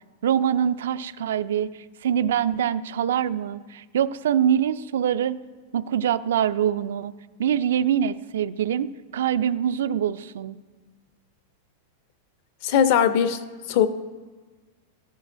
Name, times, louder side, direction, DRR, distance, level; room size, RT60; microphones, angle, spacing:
voice 1, 0.2-1.7 2.0-5.4 5.7-7.1 7.4-10.6, right 9 dB, 80° right, 13 dB, 0.4 m, -24 dB
voice 2, 12.6-13.4 13.7-13.9, left 8 dB, 40° left, 12 dB, 0.5 m, -19 dB
14.0 x 10.0 x 2.6 m, 1.4 s
supercardioid pair, 180°, 0 cm